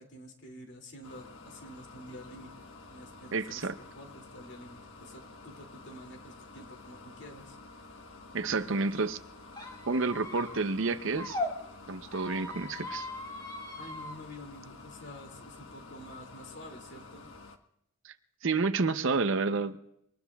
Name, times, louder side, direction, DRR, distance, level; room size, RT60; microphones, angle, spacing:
voice 1, 0.0-7.6 13.8-17.3, left 1 dB, 55° left, 3 dB, 2.4 m, -49 dB
sound 1, 1.0-17.6, left 3 dB, 70° left, 1.2 m, -50 dB
voice 2, 3.3-3.7 8.3-9.2 9.9-11.4 11.9-13.1 18.0-18.1 18.4-19.8, right 4 dB, 65° right, 11 dB, 0.7 m, -29 dB
Squeak, 9.5-11.5 12.1-14.2, left 2 dB, 20° left, 2.6 m, -39 dB
24.5 x 19.5 x 2.3 m, 0.76 s
head